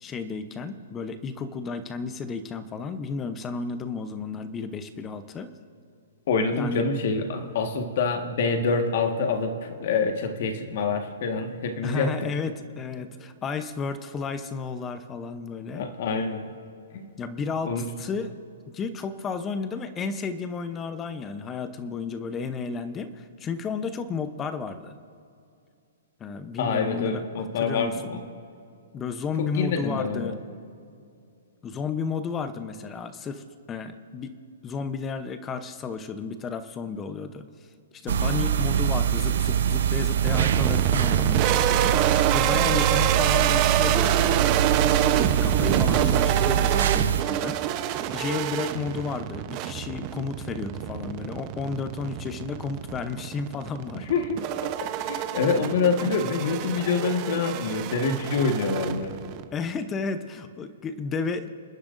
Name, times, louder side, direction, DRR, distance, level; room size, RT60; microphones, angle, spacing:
voice 1, 0.0-5.5 6.5-6.8 11.8-15.8 17.2-18.3 18.7-24.9 26.2-28.0 28.9-30.4 31.6-34.4 34.6-37.5 37.9-44.5 45.1-47.6 48.1-54.1 59.5-61.5, left 5 dB, 20° left, 10 dB, 0.8 m, -32 dB
voice 2, 6.3-12.1 15.7-16.5 16.9-17.0 17.6-17.8 26.6-28.2 29.4-30.4 54.0-54.4 54.8-59.2, left 4 dB, 55° left, 5 dB, 1.6 m, -26 dB
sound 1, 38.1-47.2, right 9 dB, 70° right, 0.8 m, -24 dB
sound 2, 40.2-59.4, right 11 dB, 35° right, 0.9 m, -27 dB
28.0 x 10.0 x 2.6 m, 2.5 s
hypercardioid pair, 145°, 0 cm